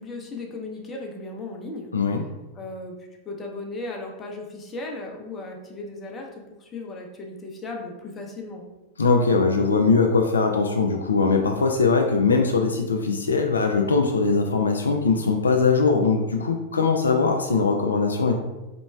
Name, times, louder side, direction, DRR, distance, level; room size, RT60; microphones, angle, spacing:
voice 1, 0.0-1.9 2.5-8.7, left 2 dB, 20° left, 0 dB, 0.7 m, -36 dB
voice 2, 1.9-2.2 9.0-18.4, left 4 dB, 75° left, 3 dB, 0.3 m, -21 dB
4.2 x 3.0 x 2.3 m, 1.1 s
figure-of-eight pair, 90°, 0 cm